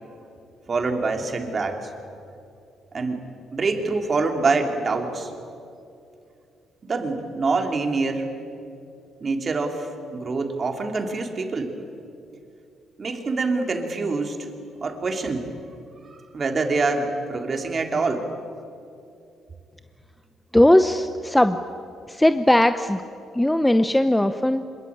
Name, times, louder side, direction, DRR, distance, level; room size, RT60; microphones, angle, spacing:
voice 1, 0.7-1.9 2.9-3.2 3.5-5.3 6.8-8.3 9.2-11.7 13.0-14.5 14.8-15.5 16.0-18.3, right 3 dB, 40° right, 4 dB, 3.3 m, -25 dB
voice 2, 20.5-21.6 22.2-23.0 23.4-24.6, left 1 dB, 10° left, 10 dB, 0.8 m, -18 dB
26.0 x 22.0 x 8.8 m, 2.6 s
cardioid pair, 90°, 0 cm